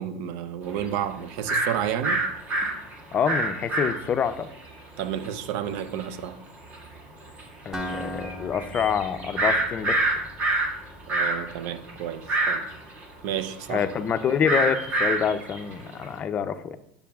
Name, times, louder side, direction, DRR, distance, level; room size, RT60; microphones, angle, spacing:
voice 1, 0.0-2.2 5.0-6.4 11.1-12.7 13.2-13.8, right 9 dB, 65° right, 0.6 m, -31 dB
sound 1, 0.7-0.8 1.5-1.7 2.0-4.3 4.7-4.8 5.0-5.3 6.0-6.1 6.7-6.8 7.2-7.4 7.8-10.7 11.0-16.0, right 2 dB, 35° right, 1.7 m, -26 dB
voice 2, 3.1-4.5 7.6-10.0 13.7-16.8, left 7 dB, 30° left, 0.5 m, -26 dB
Acoustic guitar, 7.7-11.6, equal, 10° right, 1.1 m, -39 dB
10.0 x 6.8 x 2.3 m
supercardioid pair, 115°, 5 cm